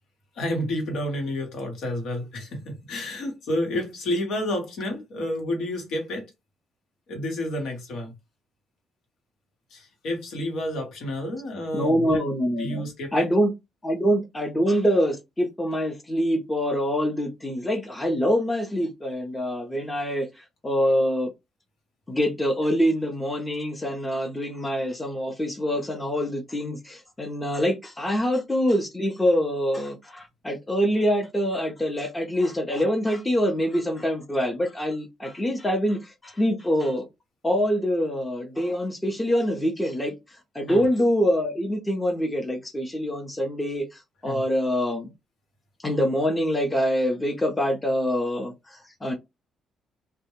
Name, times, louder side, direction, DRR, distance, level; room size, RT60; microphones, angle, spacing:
voice 1, 0.3-6.3 7.1-8.1 9.7-12.2 12.6-13.3 40.7-40.8 44.2-44.4, left 1 dB, 75° left, 1.0 m, -30 dB
voice 2, 11.7-12.8 13.1-13.5 13.8-20.3 20.6-21.3 22.1-37.1 37.4-40.2 40.5-45.1 45.8-49.1, equal, 15° left, 0.7 m, -25 dB
2.2 x 2.1 x 3.0 m
cardioid pair, 90°, 0 cm